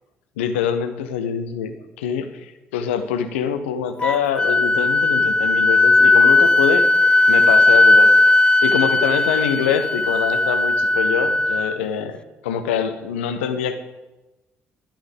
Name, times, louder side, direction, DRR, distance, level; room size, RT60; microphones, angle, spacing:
voice 1, 0.4-6.9 7.3-8.1 8.6-13.8, left 8 dB, 75° left, 10 dB, 0.6 m, -24 dB
Wind instrument woodwind instrument, 4.0-11.8, left 2 dB, 15° left, 0.5 m, -16 dB
11.0 x 10.0 x 3.5 m, 1.1 s
figure-of-eight pair, 45°, 6 cm